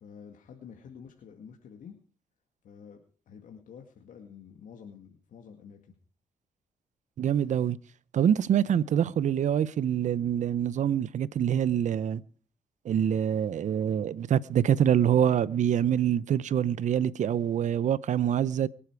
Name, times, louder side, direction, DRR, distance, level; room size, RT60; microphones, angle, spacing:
voice 1, 0.0-2.0 2.6-5.9, left 7 dB, 75° left, 2.2 m, -49 dB
voice 2, 7.2-7.8 8.1-12.2 12.8-18.7, right 9 dB, 65° right, 0.8 m, -25 dB
23.5 x 8.8 x 4.7 m
supercardioid pair, 60°, 13 cm